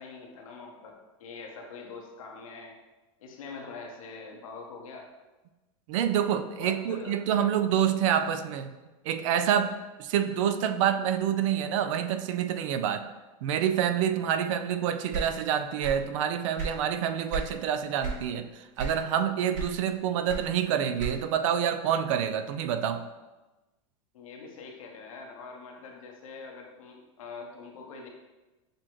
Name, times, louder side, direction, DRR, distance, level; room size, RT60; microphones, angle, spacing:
voice 1, 0.0-2.7 3.2-5.1 6.6-7.2 24.1-28.1, left 4 dB, 85° left, 1 dB, 0.9 m, -44 dB
voice 2, 5.9-8.8 9.0-9.7 10.0-13.1 13.4-23.0, right 9 dB, 70° right, 9 dB, 0.4 m, -27 dB
sound 1, 15.1-16.1 16.4-17.6 18.0-18.3 18.8-19.2 19.5-21.4, right 4 dB, 50° right, 1.1 m, -34 dB
6.4 x 2.3 x 3.0 m, 1.1 s
hypercardioid pair, 105°, 17 cm